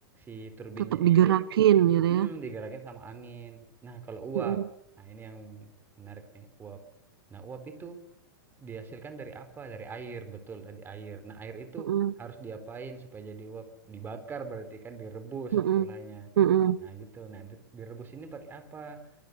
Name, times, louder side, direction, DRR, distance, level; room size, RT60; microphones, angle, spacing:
voice 1, 0.1-1.4 2.1-4.7 5.0-6.8 7.3-8.0 8.6-16.3 16.8-19.1, right 5 dB, 15° right, 8 dB, 4.2 m, -42 dB
voice 2, 1.0-2.3 4.5-4.6 11.9-12.1 15.5-15.8 16.4-16.8, right 11 dB, 75° right, 16 dB, 1.1 m, -22 dB
24.0 x 23.5 x 8.4 m, 0.79 s
hypercardioid pair, 145°, 13 cm